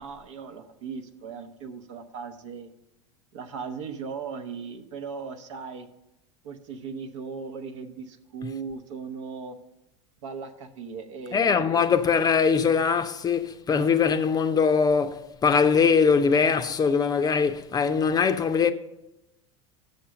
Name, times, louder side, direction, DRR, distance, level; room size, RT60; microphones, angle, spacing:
voice 1, 0.0-2.7 3.3-5.9 6.4-9.6 10.2-11.8, right 5 dB, 70° right, 0.9 m, -38 dB
voice 2, 11.3-18.7, left 6 dB, 25° left, 0.5 m, -22 dB
6.7 x 6.5 x 6.6 m
hypercardioid pair, 85°, 16 cm